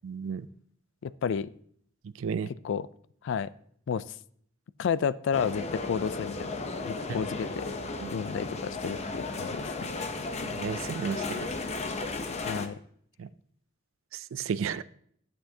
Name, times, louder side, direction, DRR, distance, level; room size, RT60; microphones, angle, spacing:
voice 1, 0.0-0.5 2.2-2.5 8.0-8.1 10.4-11.5 13.2-13.3 14.1-14.8, right 6 dB, 75° right, 0.4 m, -33 dB
voice 2, 1.0-1.5 2.6-2.9 3.2-3.5 3.9-4.0 4.8-6.6 6.8-7.7 8.1-9.9 12.5-12.8, left 7 dB, 65° left, 0.3 m, -31 dB
sound 1, 5.3-12.7, left 3 dB, 35° left, 0.6 m, -35 dB
11.5 x 7.9 x 2.8 m
head